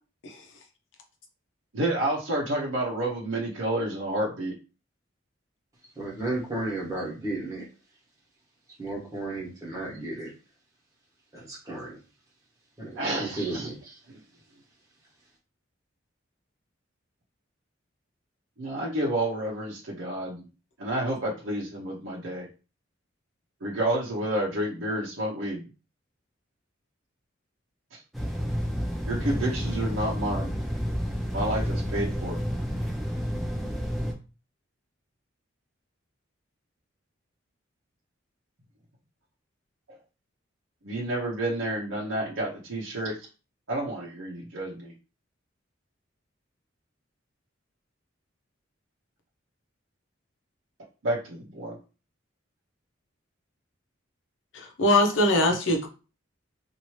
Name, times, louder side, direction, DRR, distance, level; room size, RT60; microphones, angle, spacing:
voice 1, 1.7-4.6 13.0-13.7 18.6-20.4 20.8-22.5 23.6-25.7 27.9-28.0 29.1-30.5 31.3-32.4 40.8-43.2 43.7-44.9 51.0-51.8, right 1 dB, 75° right, -4 dB, 0.8 m, -30 dB
voice 2, 5.9-7.7 8.8-10.3 11.3-12.0 12.8-14.0, right 2 dB, 15° right, -5 dB, 1.3 m, -33 dB
sound 1, 28.1-34.1, equal, ahead, 0.6 m, -30 dB
voice 3, 54.5-55.9, left 1 dB, 65° left, 2 dB, 0.8 m, -22 dB
2.8 x 2.6 x 3.0 m, 0.33 s
head